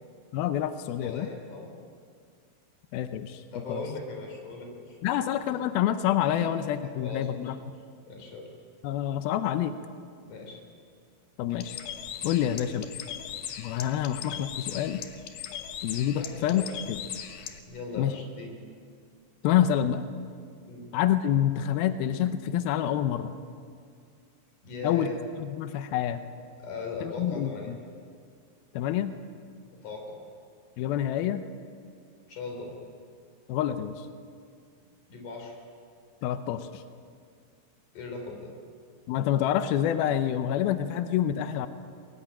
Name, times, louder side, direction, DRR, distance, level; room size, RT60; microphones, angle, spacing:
voice 1, 0.3-1.3 2.9-3.8 5.0-7.6 8.8-9.7 11.4-11.8 12.2-12.9 13.6-15.0 15.8-17.0 18.0-18.1 19.4-20.0 20.9-23.3 24.8-25.1 25.4-26.2 27.0-27.8 28.7-29.1 30.8-31.4 33.5-34.1 36.2-36.8 39.1-41.7, left 11 dB, 85° left, 9 dB, 2.2 m, -27 dB
voice 2, 1.0-1.7 3.5-5.0 6.2-6.5 6.8-7.3 8.1-8.5 10.3-10.6 16.2-16.8 17.7-18.6 20.6-20.9 24.6-25.2 26.6-27.7 29.7-30.2 32.3-32.7 35.1-35.6 37.9-38.5, left 3 dB, 45° left, 2 dB, 5.4 m, -39 dB
Bird, 11.5-17.6, left 9 dB, 65° left, 2.6 m, -39 dB
22.5 x 20.5 x 8.8 m, 2.2 s
omnidirectional pair, 5.4 m